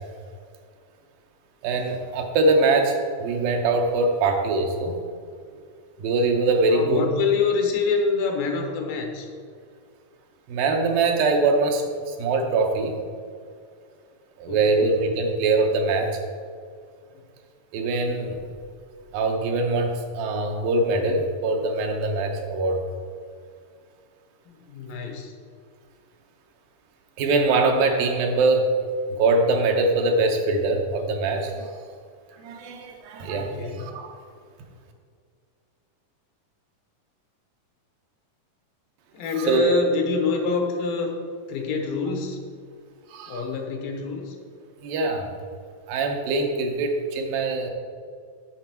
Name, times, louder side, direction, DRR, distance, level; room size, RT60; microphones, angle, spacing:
voice 1, 1.6-5.0 6.0-7.0 10.5-12.9 14.4-16.1 17.7-18.4 19.1-22.8 27.2-28.7 29.1-31.7 32.4-34.2 39.4-39.8 43.1-43.4 44.8-45.3 45.9-47.7, right 3 dB, 85° right, 3 dB, 2.6 m, -23 dB
voice 2, 6.7-9.3 14.5-14.8 24.5-25.3 33.2-33.8 39.1-41.2 41.5-42.4 43.3-44.4, left 4 dB, 90° left, 3 dB, 2.7 m, -26 dB
7.6 x 6.0 x 4.4 m, 2.2 s
omnidirectional pair, 3.9 m